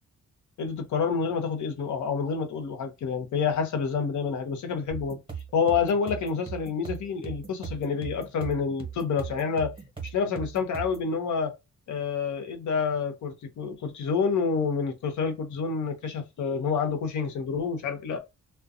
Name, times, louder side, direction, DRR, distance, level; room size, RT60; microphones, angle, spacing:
voice 1, 0.6-5.2 5.5-9.7 10.1-11.5 11.9-18.2, left 5 dB, 75° left, 0.7 m, -28 dB
sound 1, 4.9-11.1, right 7 dB, 20° right, 0.9 m, -39 dB
2.4 x 2.2 x 2.6 m
cardioid pair, 95°, 29 cm